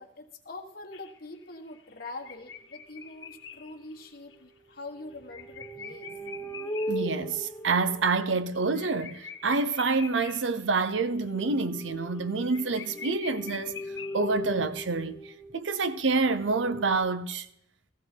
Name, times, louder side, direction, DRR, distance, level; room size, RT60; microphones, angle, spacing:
voice 1, 0.0-6.1, left 2 dB, 55° left, 1.5 m, -44 dB
sound 1, 0.9-7.1 7.4-7.5 7.8-7.9 8.2-10.8 11.2-11.5 11.8-11.9 12.2-12.3 12.5-14.6, left 7 dB, 80° left, 1.3 m, -45 dB
sound 2, 2.3-2.4 3.2-3.4 4.3-8.8 11.0-17.0, equal, 15° left, 1.0 m, -39 dB
voice 2, 6.9-13.8 14.1-17.5, right 4 dB, 90° right, 0.7 m, -27 dB
15.5 x 15.0 x 4.5 m
head